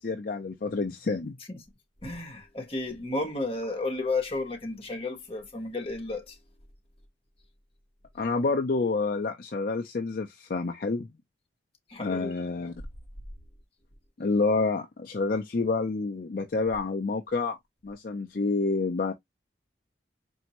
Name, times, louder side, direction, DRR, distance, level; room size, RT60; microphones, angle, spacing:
voice 1, 0.0-1.4 8.2-11.1 12.0-12.7 14.2-17.6 17.8-19.1, left 3 dB, 50° left, 0.5 m, -28 dB
voice 2, 2.0-6.4 11.9-12.3, left 2 dB, 30° left, 1.0 m, -32 dB
4.3 x 2.6 x 2.9 m
head